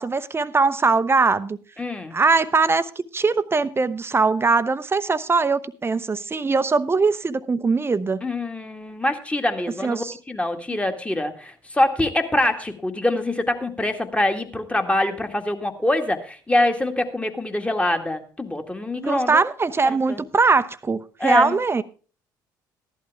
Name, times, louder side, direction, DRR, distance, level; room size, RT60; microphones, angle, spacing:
voice 1, 0.0-1.6 2.1-8.2 9.8-10.1 19.0-21.8, right 4 dB, 25° right, 0.9 m, -21 dB
voice 2, 1.8-2.1 8.2-19.4 19.9-20.2 21.2-21.5, left 1 dB, 10° left, 2.0 m, -24 dB
15.0 x 11.5 x 3.5 m
hypercardioid pair, 55°, 10 cm